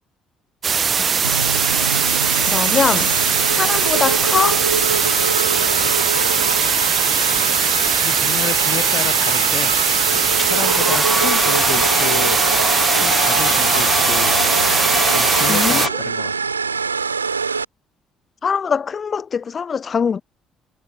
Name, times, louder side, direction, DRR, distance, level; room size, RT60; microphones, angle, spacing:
sound 1, 0.6-15.9, right 6 dB, 40° right, 1.4 m, -19 dB
voice 1, 0.9-1.5 1.9-2.1 2.5-3.1 3.5-4.6 15.5-15.8 18.4-20.2, left 6 dB, 40° left, 0.9 m, -22 dB
sound 2, 1.2-17.6, right 5 dB, 90° right, 0.8 m, -24 dB
voice 2, 8.0-9.7 10.4-12.4 13.0-14.4 15.1-16.3, left 11 dB, 55° left, 4.6 m, -30 dB
Domestic sounds home sounds, 10.3-15.9, left 2 dB, 15° left, 1.0 m, -23 dB
figure-of-eight pair, 50°, 0 cm